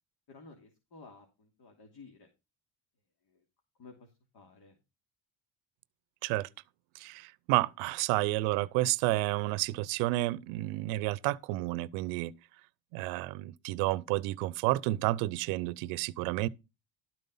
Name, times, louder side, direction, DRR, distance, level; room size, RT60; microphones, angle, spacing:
voice 1, 0.3-2.3 3.3-3.4 3.8-4.8, left 4 dB, 55° left, 3.0 m, -54 dB
voice 2, 6.9-12.3 12.9-16.5, right 18 dB, 90° right, 0.7 m, -30 dB
12.5 x 5.4 x 5.4 m
supercardioid pair, 80°, 46 cm